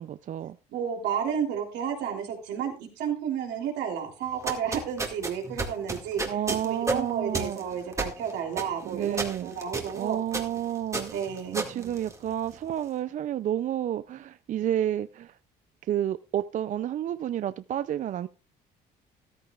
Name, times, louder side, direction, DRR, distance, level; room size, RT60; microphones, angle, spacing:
voice 1, 0.0-0.6 6.2-7.6 8.8-9.5 9.9-11.1 11.5-15.4 15.9-18.3, right 11 dB, 50° right, 0.4 m, -30 dB
voice 2, 0.7-6.2 6.6-10.2 11.1-11.9, right 8 dB, 80° right, 3.2 m, -32 dB
sound 1, 4.3-12.7, right 3 dB, 15° right, 2.0 m, -34 dB
13.5 x 13.0 x 2.4 m
cardioid pair, 110°, 17 cm